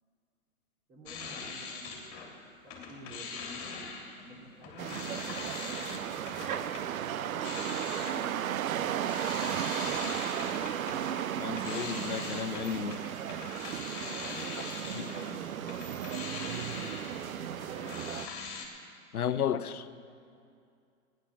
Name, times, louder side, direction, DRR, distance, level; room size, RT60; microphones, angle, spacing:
voice 1, 0.9-6.4 12.8-13.2 13.9-18.5 19.1-20.5, right 1 dB, 20° right, 3.2 m, -52 dB
sound 1, 1.1-2.3 2.6-18.7, left 5 dB, 30° left, 2.5 m, -42 dB
sound 2, 4.8-18.3, right 10 dB, 70° right, 0.7 m, -35 dB
voice 2, 11.4-13.0 15.0-15.1 19.1-19.8, left 9 dB, 85° left, 0.7 m, -33 dB
15.0 x 10.5 x 6.0 m
hypercardioid pair, 135°, 43 cm